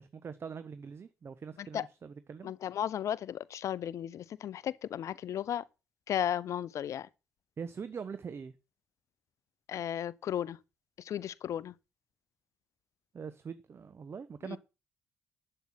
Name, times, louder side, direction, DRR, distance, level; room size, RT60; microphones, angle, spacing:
voice 1, 0.0-2.5 7.6-8.5 13.1-14.6, right 6 dB, 35° right, 1.0 m, -43 dB
voice 2, 2.4-5.6 6.1-7.1 9.7-10.6 11.0-11.7 14.5-14.6, left 10 dB, 50° left, 0.6 m, -35 dB
12.0 x 7.8 x 6.1 m
figure-of-eight pair, 45°, 7 cm